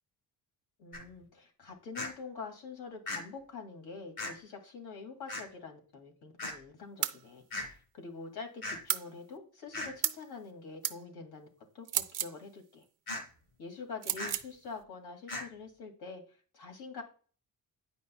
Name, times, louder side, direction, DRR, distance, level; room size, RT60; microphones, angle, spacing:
voice 1, 0.8-11.5 11.7-12.9 13.6-17.0, left 4 dB, 85° left, 3 dB, 2.3 m, -46 dB
sound 1, 0.9-1.0 1.9-2.1 3.1-3.2 4.2-4.3 5.3-5.4 6.4-6.5 7.5-7.7 8.6-8.8 9.7-9.9 13.1-13.2 14.2-14.3 15.3-15.4, left 2 dB, 60° left, 2.7 m, -37 dB
sound 2, 7.0-7.2 8.9-9.1 10.0-10.2 10.8-11.0 11.9-12.4 14.0-14.5, right 11 dB, 55° right, 0.5 m, -32 dB
9.7 x 5.3 x 2.2 m, 0.40 s
cardioid pair, 175°, 38 cm